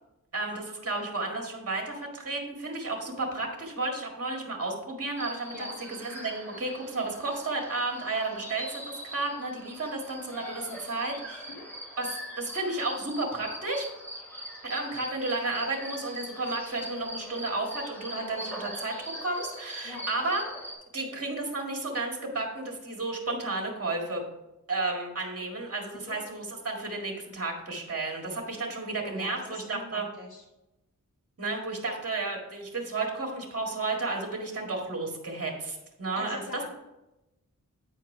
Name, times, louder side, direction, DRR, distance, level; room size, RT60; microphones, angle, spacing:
voice 1, 0.3-11.4 12.0-13.9 14.6-20.5 20.9-24.2 24.7-30.1 31.4-36.7, right 2 dB, 45° right, 1 dB, 1.9 m, -32 dB
sound 1, 5.2-20.7, equal, 5° left, 2.6 m, -42 dB
voice 2, 28.9-30.4 36.1-36.7, left 3 dB, 65° left, -1 dB, 1.4 m, -42 dB
8.9 x 4.6 x 4.6 m, 0.94 s
wide cardioid pair, 95°, 32 cm